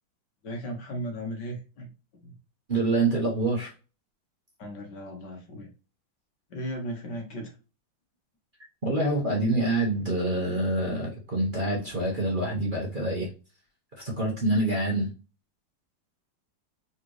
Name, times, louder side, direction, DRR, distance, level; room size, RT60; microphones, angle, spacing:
voice 1, 0.4-1.9 2.2-2.3 4.6-5.7 6.5-7.5, equal, 60° left, 2 dB, 1.9 m, -36 dB
voice 2, 2.7-3.7 8.8-13.3 14.0-15.1, right 2 dB, 30° right, -2 dB, 1.2 m, -26 dB
4.2 x 4.0 x 3.1 m, 0.33 s
omnidirectional pair, 2.1 m